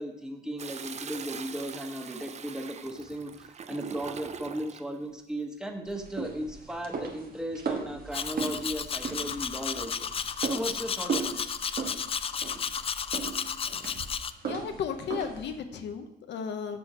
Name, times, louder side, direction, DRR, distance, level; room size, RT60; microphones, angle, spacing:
voice 1, 0.0-11.6, equal, 5° right, 3 dB, 1.2 m, -36 dB
Toilet flush, 0.6-4.9 6.3-6.8, right 6 dB, 40° right, 0.5 m, -42 dB
sound 1, 5.9-15.6, right 5 dB, 55° right, 1.3 m, -37 dB
Domestic sounds home sounds, 8.1-14.3, left 7 dB, 30° left, 0.4 m, -33 dB
voice 2, 14.4-16.8, left 7 dB, 80° left, 6 dB, 0.8 m, -34 dB
7.0 x 6.4 x 6.1 m, 0.85 s
cardioid pair, 110°, 18 cm